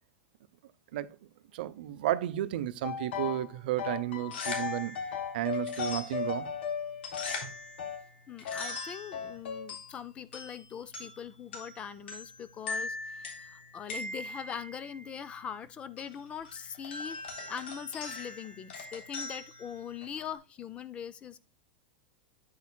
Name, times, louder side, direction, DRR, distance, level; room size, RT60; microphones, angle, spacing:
voice 1, 1.5-4.9 5.3-6.5, right 14 dB, 60° right, 0.7 m, -32 dB
sound 1, 2.8-3.5 3.8-8.0 8.4-8.7 9.1-9.7, left 7 dB, 70° left, 1.7 m, -36 dB
sound 2, 4.1-20.3, left 3 dB, 90° left, 3.5 m, -42 dB
voice 2, 8.3-21.4, left 8 dB, 20° left, 0.4 m, -42 dB
9.2 x 8.6 x 2.2 m
supercardioid pair, 160°, 6 cm